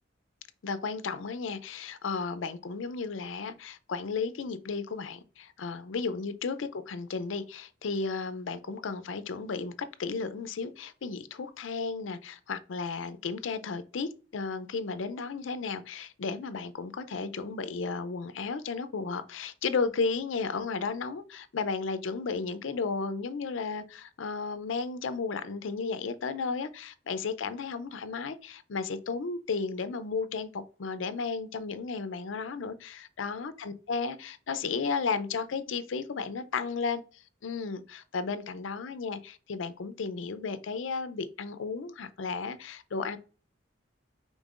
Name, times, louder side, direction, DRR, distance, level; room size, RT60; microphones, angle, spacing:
voice 1, 0.6-43.2, left 4 dB, 75° left, 0.5 m, -34 dB
5.3 x 3.6 x 2.4 m
head